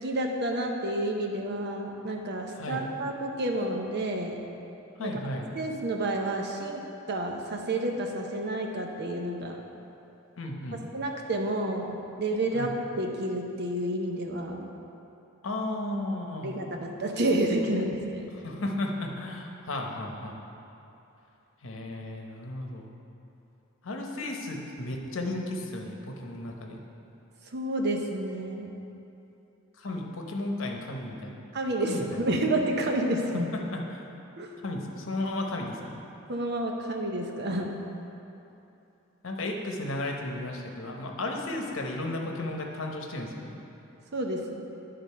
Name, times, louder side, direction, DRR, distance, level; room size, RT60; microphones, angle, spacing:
voice 1, 0.0-4.4 5.0-5.1 5.5-6.8 7.1-9.6 10.9-14.7 16.4-18.4 27.5-28.8 31.5-33.5 34.4-34.5 36.3-37.8 44.1-44.6, right 1 dB, 55° right, 2 dB, 0.8 m, -30 dB
voice 2, 2.6-2.9 5.0-5.5 10.4-10.8 12.5-12.7 15.4-16.5 18.3-20.3 21.6-22.9 23.8-26.8 29.8-31.3 31.9-32.3 33.5-34.0 34.6-36.0 39.2-43.5, left 1 dB, 75° left, 1 dB, 0.9 m, -34 dB
10.5 x 3.8 x 5.6 m, 2.9 s
head